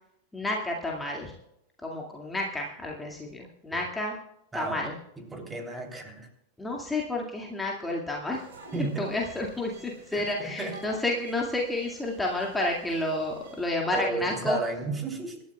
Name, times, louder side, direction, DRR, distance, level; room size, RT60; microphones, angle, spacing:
voice 1, 0.3-1.3 1.8-4.2 4.5-4.9 6.6-8.4 8.8-14.6, left 2 dB, 10° left, -1 dB, 2.1 m, -30 dB
voice 2, 4.5-4.8 5.2-6.3 8.7-9.1 10.1-10.9 13.9-15.4, right 3 dB, 10° right, 2 dB, 3.2 m, -33 dB
sound 1, 8.3-13.7, right 2 dB, 60° right, 7.0 m, -50 dB
26.0 x 13.0 x 2.3 m, 0.79 s
figure-of-eight pair, 90°, 0 cm